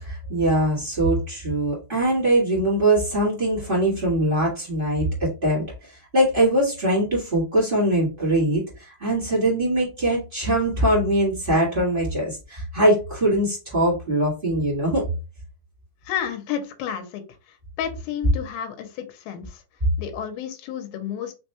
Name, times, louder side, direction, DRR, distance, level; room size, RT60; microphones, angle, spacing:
voice 1, 0.0-15.1, right 1 dB, 45° right, -6 dB, 0.6 m, -22 dB
voice 2, 16.1-17.2 17.8-19.6 20.0-21.3, left 9 dB, 85° left, 6 dB, 2.6 m, -31 dB
5.8 x 2.9 x 2.2 m, 0.30 s
omnidirectional pair, 4.3 m